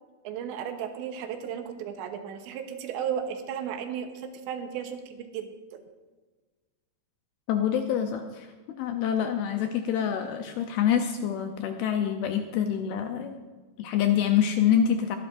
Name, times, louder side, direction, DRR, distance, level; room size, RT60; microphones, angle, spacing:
voice 1, 0.2-5.8, right 8 dB, 85° right, 6 dB, 3.2 m, -35 dB
voice 2, 7.5-13.4 13.8-15.2, left 9 dB, 80° left, 5 dB, 2.3 m, -26 dB
22.0 x 11.5 x 2.6 m, 1.3 s
omnidirectional pair, 5.1 m